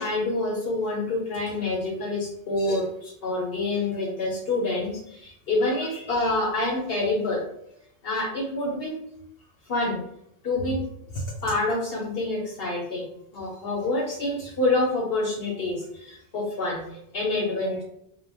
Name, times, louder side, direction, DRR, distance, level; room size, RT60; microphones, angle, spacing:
voice 1, 0.0-7.4 8.0-9.0 9.7-10.0 10.4-10.8 11.4-17.8, left 2 dB, 60° left, -1 dB, 0.8 m, -27 dB
2.2 x 2.1 x 3.3 m, 0.75 s
omnidirectional pair, 1.2 m